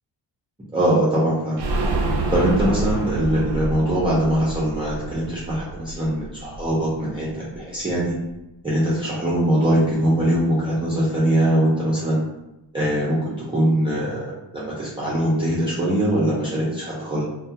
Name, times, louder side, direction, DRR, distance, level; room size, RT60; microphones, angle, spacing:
voice 1, 0.7-1.7 2.3-8.1 8.6-12.2 12.7-14.2 14.5-17.2, right 1 dB, 15° right, -9 dB, 0.4 m, -22 dB
sound 1, 1.6-7.2 7.5-7.6 7.9-8.0, right 2 dB, 65° right, 0.5 m, -27 dB
2.2 x 2.1 x 2.7 m, 0.95 s
wide cardioid pair, 155°, 43 cm